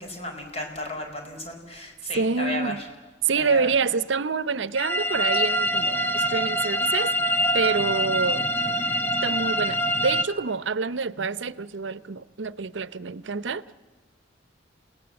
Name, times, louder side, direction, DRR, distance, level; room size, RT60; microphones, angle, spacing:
voice 1, 0.0-2.9 3.3-3.7, left 1 dB, 35° left, 4.8 m, -34 dB
voice 2, 2.1-2.8 3.2-7.1 7.5-8.5 9.2-13.6, right 4 dB, 85° right, 0.7 m, -27 dB
sound 1, 4.8-10.2, equal, 10° left, 0.9 m, -25 dB
29.5 x 18.0 x 7.7 m
head